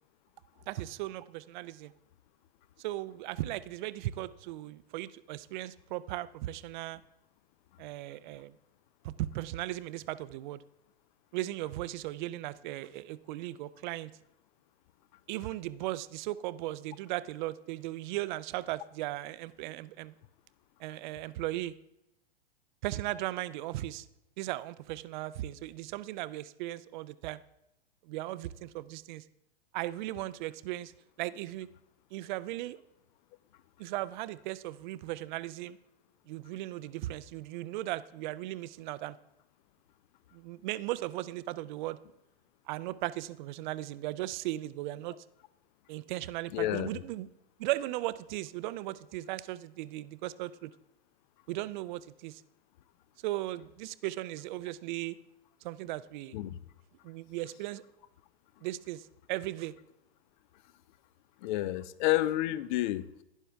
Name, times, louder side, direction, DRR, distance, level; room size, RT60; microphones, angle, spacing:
voice 1, 0.7-1.9 2.8-7.0 7.8-8.5 9.0-10.6 11.3-14.1 15.3-20.1 20.8-21.7 22.8-24.1 24.4-27.4 28.0-29.2 29.7-30.9 31.2-31.7 32.1-32.8 33.8-35.8 36.3-39.2 40.3-42.0 42.7-45.1 45.9-47.3 47.6-50.7 51.5-52.4 53.2-55.1 55.6-56.4 57.0-57.8 58.6-59.0 59.3-59.7, right 16 dB, 50° right, 16 dB, 0.5 m, -37 dB
voice 2, 46.5-47.0 56.3-56.6 61.4-63.2, left 15 dB, 50° left, 17 dB, 0.6 m, -30 dB
12.0 x 9.9 x 3.4 m, 0.88 s
hypercardioid pair, 115°, 32 cm